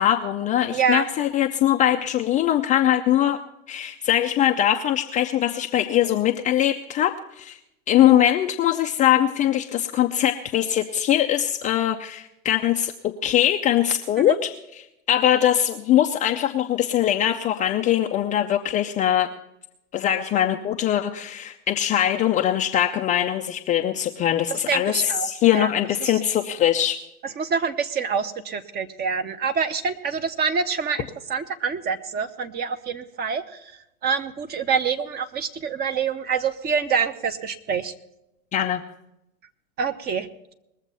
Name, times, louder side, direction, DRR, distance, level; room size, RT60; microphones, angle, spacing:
voice 1, 0.0-3.4 3.7-7.6 7.9-19.3 19.9-27.0 38.5-38.8, left 11 dB, 20° left, 4 dB, 0.5 m, -22 dB
voice 2, 0.7-1.0 14.2-14.4 24.7-25.7 26.0-26.1 27.4-33.6 34.0-37.9 39.8-40.5, right 6 dB, 25° right, 10 dB, 0.9 m, -26 dB
20.5 x 7.3 x 5.5 m, 0.85 s
hypercardioid pair, 110°, 41 cm